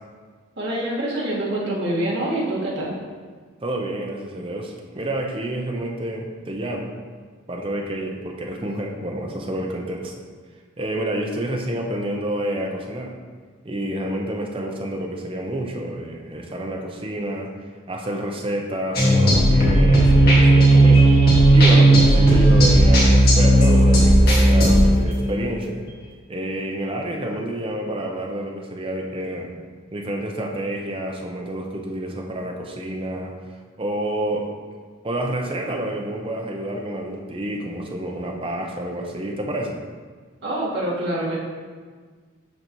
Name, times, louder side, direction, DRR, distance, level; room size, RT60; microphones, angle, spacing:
voice 1, 0.6-3.0 40.4-41.4, right 1 dB, 55° right, -7 dB, 1.8 m, -25 dB
voice 2, 3.6-6.9 7.5-10.1 10.8-13.1 13.6-17.5 17.9-21.1 21.5-25.8 26.3-29.5 29.9-33.3 33.8-34.5 35.0-39.8, right 1 dB, 25° right, 0 dB, 0.7 m, -28 dB
sound 1, 19.0-25.4, right 1 dB, 45° left, 1.7 m, -14 dB
12.0 x 4.0 x 3.1 m, 1.5 s
head